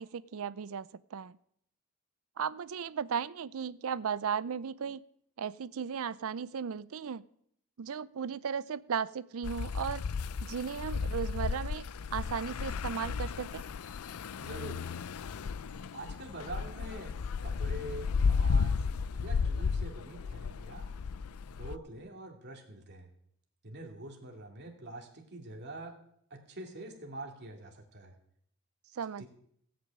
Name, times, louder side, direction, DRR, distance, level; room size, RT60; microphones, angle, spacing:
voice 1, 0.0-1.4 2.4-5.0 5.4-7.2 7.8-10.0 10.4-11.9 12.1-13.6 28.9-29.2, right 7 dB, 65° right, 18 dB, 0.5 m, -36 dB
sound 1, 9.4-21.8, left 5 dB, 75° left, 0.5 m, -34 dB
voice 2, 14.4-14.9 15.9-17.2 17.4-18.9 19.2-20.9 21.5-23.1 23.6-26.0 26.3-28.1 29.2-29.3, right 2 dB, 50° right, 1 dB, 2.4 m, -45 dB
17.0 x 6.1 x 8.7 m, 0.69 s
head